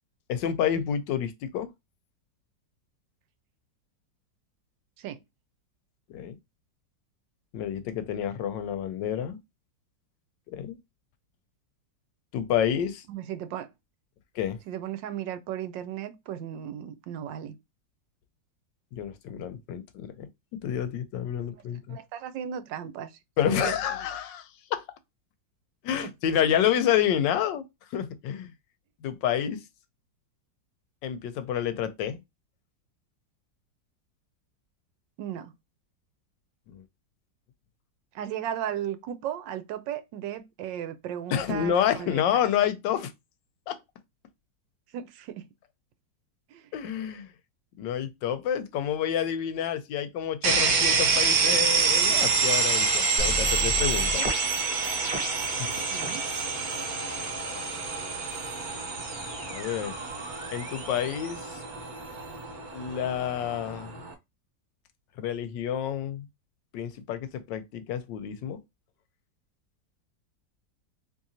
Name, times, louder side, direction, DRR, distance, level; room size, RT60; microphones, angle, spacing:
voice 1, 0.3-1.7 6.1-6.4 7.5-9.4 10.5-10.8 12.3-13.0 14.4-14.6 18.9-22.0 23.4-24.8 25.8-27.6 27.9-28.5 29.0-29.6 31.0-32.2 36.7-36.8 41.3-43.1 43.7-43.8 46.7-47.3 47.8-54.3 55.4-55.7 59.5-60.0 60.5-61.6 62.7-64.0 65.2-66.3 66.7-68.6, left 9 dB, 80° left, 1.3 m, -29 dB
voice 2, 13.1-13.7 14.7-17.6 21.9-23.1 23.5-23.7 26.0-26.1 35.2-35.5 38.1-42.4 44.9-45.4 46.5-46.7 55.9-56.2, right 10 dB, 85° right, 1.3 m, -35 dB
sound 1, 50.4-64.1, right 5 dB, 60° right, 1.3 m, -27 dB
sound 2, 53.2-56.4 56.7-57.3 58.3-62.4, equal, 25° right, 1.5 m, -37 dB
3.7 x 3.1 x 2.7 m
omnidirectional pair, 2.0 m